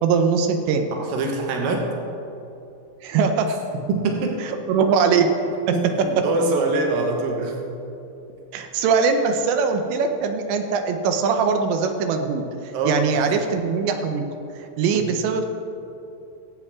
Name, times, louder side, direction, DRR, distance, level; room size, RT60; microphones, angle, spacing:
voice 1, 0.0-0.9 3.0-3.5 4.4-5.3 5.7-5.9 8.5-12.4 12.9-14.3 14.8-15.5, right 5 dB, 90° right, 6 dB, 3.0 m, -21 dB
voice 2, 0.9-1.8 3.9-4.4 5.7-7.6 12.7-13.2 14.9-15.1, right 3 dB, 65° right, 1 dB, 2.6 m, -24 dB
20.5 x 8.1 x 3.6 m, 2.8 s
omnidirectional pair, 5.0 m